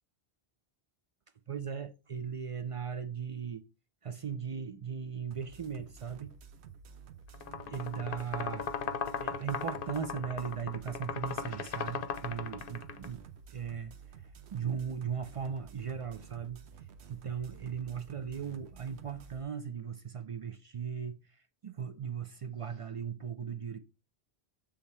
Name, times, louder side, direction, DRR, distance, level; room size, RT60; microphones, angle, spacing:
voice 1, 1.5-3.7 4.0-6.3 7.7-8.7 9.2-23.8, right 7 dB, 55° right, 0.4 m, -38 dB
sound 1, 5.3-19.4, right 7 dB, 90° right, 1.0 m, -52 dB
sound 2, 7.3-13.1, left 6 dB, 60° left, 0.8 m, -37 dB
7.1 x 3.5 x 4.3 m
omnidirectional pair, 1.1 m